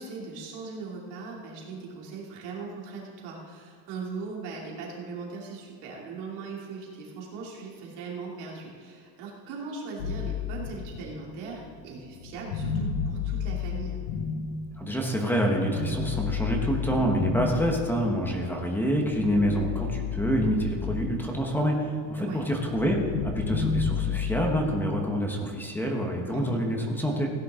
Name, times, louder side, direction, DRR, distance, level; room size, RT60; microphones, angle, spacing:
voice 1, 0.0-14.0 22.2-22.5 26.3-26.7, right 4 dB, 60° right, -3 dB, 3.0 m, -39 dB
sound 1, 10.0-15.1 15.6-18.3 18.8-21.6 21.9-24.6, left 6 dB, 75° left, 1.5 m, -32 dB
voice 2, 14.8-27.3, equal, 5° left, 0 dB, 1.2 m, -27 dB
16.5 x 10.0 x 3.7 m, 2.4 s
cardioid pair, 170°, 46 cm